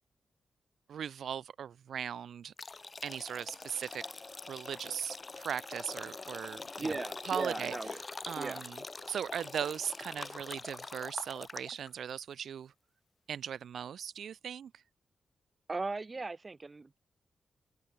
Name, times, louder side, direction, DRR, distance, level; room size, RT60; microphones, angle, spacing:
voice 1, 0.9-2.5 3.0-4.0 4.5-7.0 7.2-7.7 8.3-8.8 9.1-12.7 13.3-14.8, right 8 dB, 85° right, 1.0 m, -38 dB
sound 1, 2.6-11.9, left 3 dB, 30° left, 0.4 m, -44 dB
voice 2, 6.8-8.0 8.4-8.6 15.7-17.0, right 3 dB, 30° right, 0.7 m, -37 dB
open air
wide cardioid pair, 125°, 0 cm